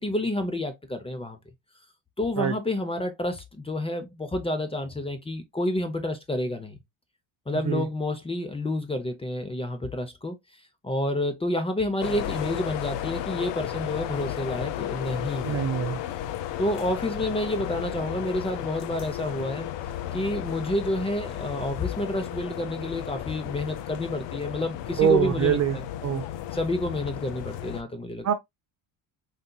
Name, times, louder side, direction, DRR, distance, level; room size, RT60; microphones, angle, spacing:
voice 1, 0.0-1.4 2.2-6.8 7.5-10.4 10.8-15.6 16.6-19.7 20.1-25.8 26.5-28.3, left 1 dB, 15° left, 0.6 m, -29 dB
sound 1, 12.0-27.8, left 11 dB, 75° left, 0.6 m, -34 dB
voice 2, 15.4-16.0 25.0-26.2 28.2-28.3, right 9 dB, 40° right, 0.4 m, -24 dB
3.9 x 2.7 x 2.2 m
cardioid pair, 115°, 44 cm